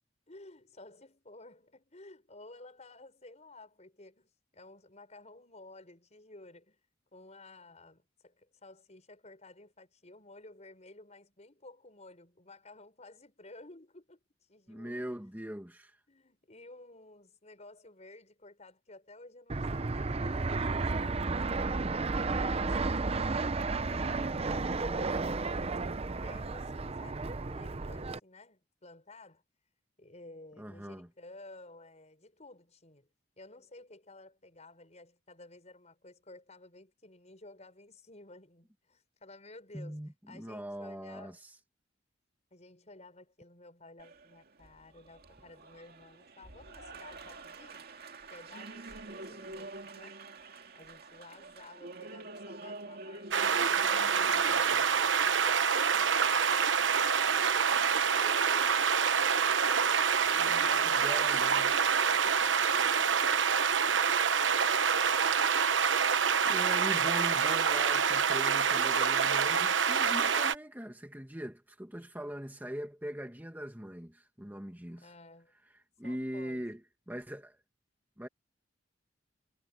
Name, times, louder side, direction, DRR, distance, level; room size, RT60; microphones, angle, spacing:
voice 1, 0.3-6.8 7.1-14.2 14.5-15.1 16.1-25.5 26.2-29.4 30.0-33.1 33.4-41.4 42.5-47.9 48.3-50.2 50.7-61.9 62.5-65.3 66.0-66.1 75.0-75.5 76.0-76.7, left 2 dB, 35° left, 6.1 m, -54 dB
voice 2, 14.7-16.0 30.6-31.1 39.7-41.5 60.4-61.7 66.5-75.1 76.0-76.8 77.1-77.6 78.2-78.3, equal, 10° right, 1.9 m, -41 dB
Fixed-wing aircraft airplane, 19.5-28.2, right 3 dB, 35° right, 0.7 m, -32 dB
Applause, 44.0-63.8, right 3 dB, 55° right, 2.3 m, -47 dB
sound 1, 53.3-70.5, right 6 dB, 80° right, 1.0 m, -27 dB
head